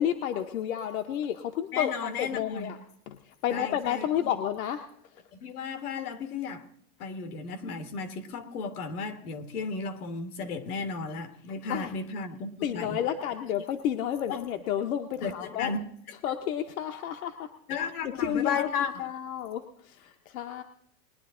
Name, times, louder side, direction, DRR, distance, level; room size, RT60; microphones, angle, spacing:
voice 1, 0.0-2.8 3.1-3.2 3.4-4.8 11.7-11.9 12.6-15.7 16.2-17.5 18.0-18.7 19.0-20.6, left 10 dB, 70° left, 6 dB, 1.0 m, -31 dB
voice 2, 1.7-2.7 3.5-4.4 5.3-6.6 7.0-13.0 14.3-14.4 15.2-15.9 17.7-19.0, left 5 dB, 85° left, 9 dB, 1.9 m, -34 dB
20.5 x 10.0 x 3.7 m, 0.70 s
supercardioid pair, 170°, 43 cm